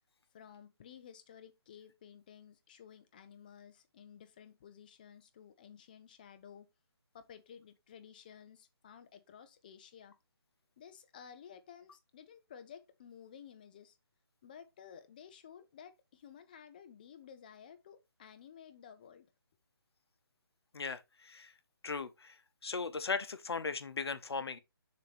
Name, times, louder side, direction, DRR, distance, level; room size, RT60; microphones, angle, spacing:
voice 1, 0.3-6.7 7.1-10.1 10.8-14.0 14.4-19.3, left 8 dB, 20° left, 0.5 m, -54 dB
voice 2, 20.7-21.5 21.8-22.4 22.6-24.6, left 4 dB, 75° left, 1.0 m, -38 dB
6.7 x 2.8 x 5.0 m
hypercardioid pair, 165°, 13 cm